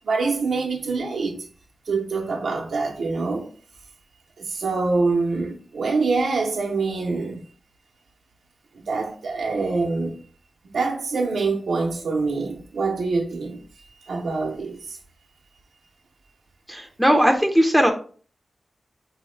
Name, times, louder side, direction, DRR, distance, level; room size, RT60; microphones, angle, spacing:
voice 1, 0.0-1.4 1.9-3.5 4.4-7.4 8.9-10.2 10.7-13.6 14.1-14.8, right 3 dB, 90° right, 0.6 m, -25 dB
voice 2, 16.7-17.9, equal, ahead, 0.5 m, -18 dB
4.3 x 2.0 x 3.1 m
wide cardioid pair, 75°, 0 cm